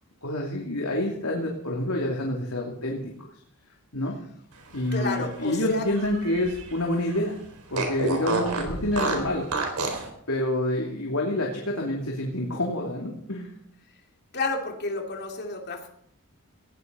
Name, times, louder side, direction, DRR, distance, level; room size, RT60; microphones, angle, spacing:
voice 1, 0.2-3.3 3.9-4.2 4.7-7.4 7.7-9.5 10.3-13.5, left 1 dB, 75° left, -1 dB, 2.9 m, -28 dB
Fart, 4.7-6.8 7.1-7.2 7.7-10.1, right 3 dB, 75° right, 4.2 m, -30 dB
voice 2, 4.9-5.8 14.3-15.9, left 3 dB, 50° left, 2 dB, 2.7 m, -30 dB
19.0 x 15.5 x 4.1 m, 0.71 s
head